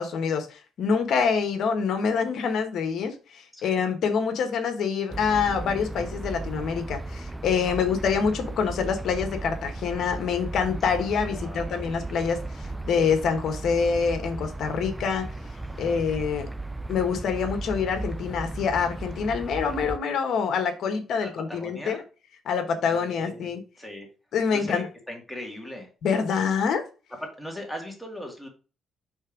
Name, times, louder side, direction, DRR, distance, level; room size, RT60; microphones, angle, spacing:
voice 1, 0.0-15.2 15.8-16.5 16.9-22.0 22.5-23.6 24.3-24.8 26.0-26.8, left 6 dB, 70° left, 6 dB, 1.3 m, -26 dB
sound 1, 5.1-20.0, right 2 dB, 10° right, 0.5 m, -36 dB
voice 2, 11.3-11.8 15.7-16.0 21.2-22.0 22.9-24.1 24.5-25.9 27.2-28.5, equal, 5° left, 0 dB, 2.1 m, -39 dB
5.4 x 3.5 x 5.1 m, 0.34 s
cardioid pair, 90°, 0 cm